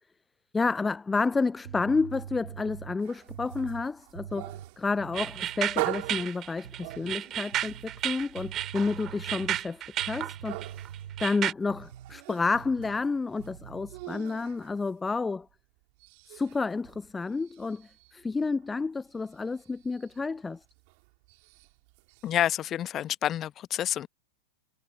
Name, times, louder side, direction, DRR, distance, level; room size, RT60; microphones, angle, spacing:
voice 1, 0.5-10.6 11.2-15.5 16.3-20.6, left 4 dB, 10° left, 0.6 m, -30 dB
sound 1, 1.3-6.3 6.6-7.2 7.5-12.2 12.5-13.1 13.4-14.1, right 10 dB, 65° right, 5.2 m, -45 dB
sound 2, 3.0-15.5 15.8-22.4, right 34 dB, 45° right, 4.4 m, -43 dB
sound 3, 5.1-11.5, right 12 dB, 30° right, 2.8 m, -33 dB
voice 2, 22.2-24.1, left 11 dB, 30° left, 1.0 m, -28 dB
figure-of-eight pair, 90°, 0 cm